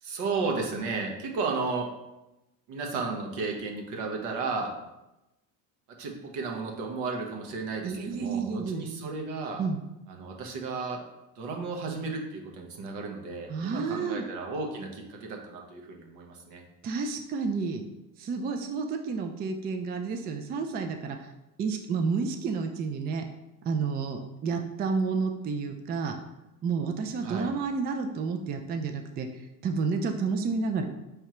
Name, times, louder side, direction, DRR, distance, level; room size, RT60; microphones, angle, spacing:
voice 1, 0.0-1.9 2.7-4.7 5.9-9.6 10.1-11.0 11.4-16.6 27.2-27.5, right 4 dB, 65° right, 2 dB, 1.0 m, -33 dB
voice 2, 7.8-8.9 9.6-9.8 13.5-14.2 16.8-17.9 18.2-21.3 21.6-23.2 23.6-26.2 26.6-30.8, right 4 dB, 25° right, 5 dB, 0.3 m, -30 dB
4.6 x 3.3 x 3.0 m, 0.95 s
hypercardioid pair, 80°, 45 cm